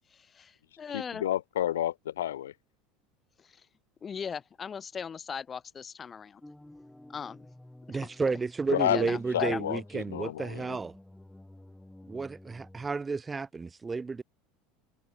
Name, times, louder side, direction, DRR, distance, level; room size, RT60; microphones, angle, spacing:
voice 1, 0.1-1.3 3.4-3.7 4.0-6.4 7.1-7.5 7.9-8.1 8.9-9.6, left 6 dB, 30° left, 5.8 m, -39 dB
voice 2, 0.9-2.5 8.7-10.8, left 12 dB, 80° left, 3.7 m, -30 dB
sound 1, 6.4-12.9, left 1 dB, 5° left, 7.0 m, -52 dB
voice 3, 7.9-10.9 12.1-14.2, right 4 dB, 20° right, 1.1 m, -32 dB
hypercardioid pair, 80°, 0 cm